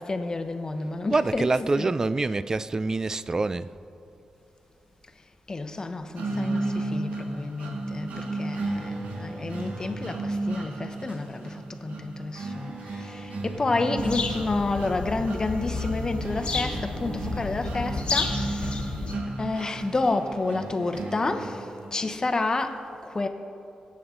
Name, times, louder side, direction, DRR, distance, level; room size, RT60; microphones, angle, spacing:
voice 1, 0.0-1.9 5.5-18.6 19.4-21.6 21.9-23.3, left 3 dB, 30° left, 0.9 m, -30 dB
voice 2, 1.1-3.7, right 3 dB, 25° right, 0.3 m, -26 dB
creepy guitar loop, 6.2-22.1, right 2 dB, 85° right, 1.4 m, -34 dB
sound 1, 14.0-19.1, left 4 dB, 50° left, 1.3 m, -31 dB
21.5 x 8.7 x 3.8 m
wide cardioid pair, 105°, 2 cm